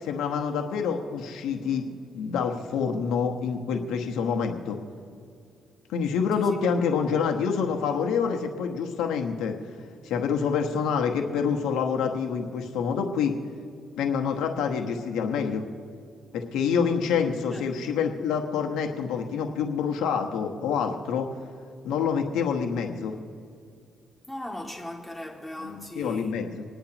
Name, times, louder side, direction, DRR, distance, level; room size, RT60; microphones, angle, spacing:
voice 1, 0.0-4.8 5.9-9.6 10.0-13.3 14.0-15.6 16.3-21.3 21.8-23.1 25.6-26.6, left 6 dB, 85° left, 3 dB, 1.1 m, -27 dB
voice 2, 17.5-17.9 24.3-26.3, left 1 dB, 10° left, -1 dB, 2.3 m, -38 dB
26.5 x 10.5 x 2.9 m, 2.4 s
cardioid pair, 90°, 0 cm